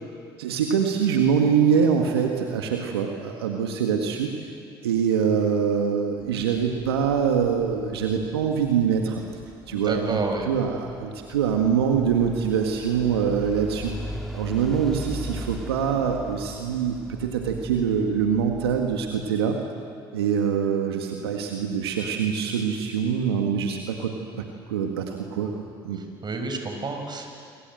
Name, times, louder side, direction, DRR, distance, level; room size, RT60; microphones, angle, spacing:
voice 1, 0.4-4.5 4.8-9.2 9.7-10.2 10.5-13.9 14.3-19.6 20.1-25.5 25.8-26.0, right 7 dB, 85° right, 2 dB, 1.9 m, -24 dB
sound 1, 6.2-19.3, equal, ahead, 3.0 m, -40 dB
voice 2, 9.7-10.5 26.0-27.4, right 3 dB, 35° right, 4 dB, 6.2 m, -30 dB
27.0 x 23.5 x 7.8 m, 2.3 s
hypercardioid pair, 60°, 13 cm